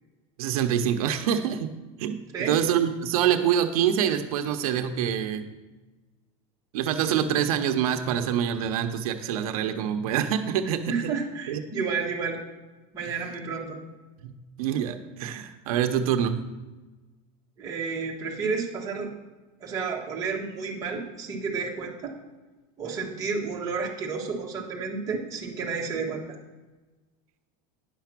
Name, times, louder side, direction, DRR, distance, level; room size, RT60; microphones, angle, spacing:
voice 1, 0.4-5.5 6.7-11.1 11.5-11.6 14.2-14.3 14.6-16.5, right 9 dB, 85° right, 7 dB, 0.8 m, -26 dB
voice 2, 10.9-12.4 12.9-13.8 17.6-19.1 19.6-22.1 22.8-26.2, right 5 dB, 20° right, -3 dB, 1.4 m, -31 dB
10.0 x 5.8 x 6.0 m, 1.2 s
supercardioid pair, 175°, 18 cm